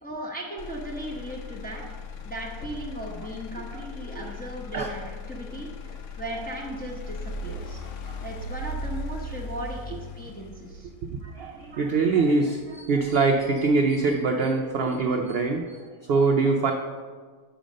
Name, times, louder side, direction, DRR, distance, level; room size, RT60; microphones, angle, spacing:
voice 1, 0.0-2.0 2.2-7.8 8.2-10.9, right 1 dB, 10° left, -2 dB, 0.6 m, -37 dB
Motor vehicle (road), 0.6-14.6 15.1-15.6, left 2 dB, 65° left, 0.9 m, -38 dB
voice 2, 11.2-15.8 16.1-16.7, right 3 dB, 65° right, 3 dB, 0.6 m, -23 dB
5.1 x 4.9 x 6.2 m, 1.5 s
omnidirectional pair, 1.5 m